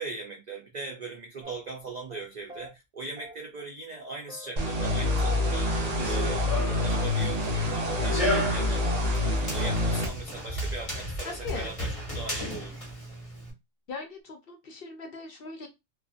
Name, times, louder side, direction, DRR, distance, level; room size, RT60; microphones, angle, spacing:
voice 1, 0.0-6.5 6.8-9.0 9.4-12.8, right 3 dB, 85° right, 0.3 m, -40 dB
sound 1, 1.4-1.8 2.1-2.2 2.5-2.7 3.2-3.7 3.9-4.0 4.3-5.5 5.8-6.6 6.9-7.4 7.7-7.8 8.1-8.6 8.9-11.2 11.5-11.9 12.2-12.4, equal, 5° right, 0.7 m, -47 dB
sound 2, 4.6-10.1, left 1 dB, 45° right, 0.6 m, -27 dB
Run, 5.8-13.5, left 1 dB, 30° left, 1.1 m, -34 dB
voice 2, 11.2-11.7 13.9-15.7, left 4 dB, 55° left, 0.7 m, -39 dB
2.5 x 2.4 x 2.4 m
omnidirectional pair, 1.3 m